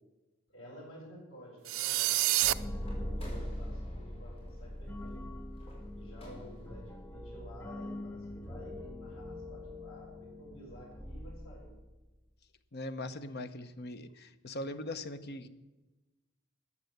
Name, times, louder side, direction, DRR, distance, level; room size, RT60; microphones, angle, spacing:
voice 1, 0.5-5.2 5.9-11.7, equal, 80° left, -8 dB, 6.6 m, -52 dB
sound 1, 1.7-2.5, right 16 dB, 80° right, 0.5 m, -27 dB
sound 2, 2.4-12.1, left 1 dB, 10° left, 0.6 m, -42 dB
sound 3, 2.8-6.9, equal, 30° left, 5.1 m, -55 dB
voice 2, 12.7-15.5, left 1 dB, 55° left, 11 dB, 0.9 m, -40 dB
13.0 x 9.7 x 8.0 m, 1.1 s
head